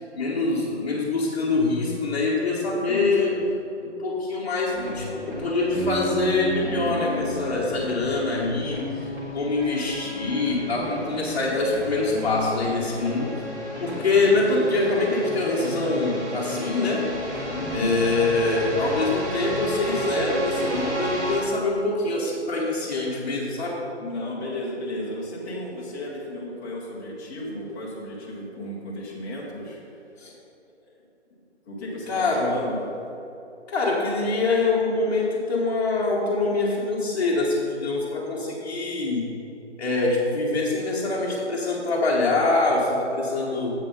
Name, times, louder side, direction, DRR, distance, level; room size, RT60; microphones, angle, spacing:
voice 1, 0.0-3.4 3.8-13.5 13.8-17.0 17.7-23.8 30.2-30.3 32.1-32.5 33.7-39.2 39.8-43.7, left 3 dB, 35° left, -7 dB, 1.2 m, -24 dB
voice 2, 2.9-3.6 17.5-17.9 24.0-30.0 31.7-32.8, left 1 dB, 15° left, -5 dB, 1.0 m, -34 dB
sound 1, 4.7-21.4, equal, 10° right, 1.0 m, -32 dB
7.6 x 7.0 x 5.3 m, 2.9 s
figure-of-eight pair, 140°, 35 cm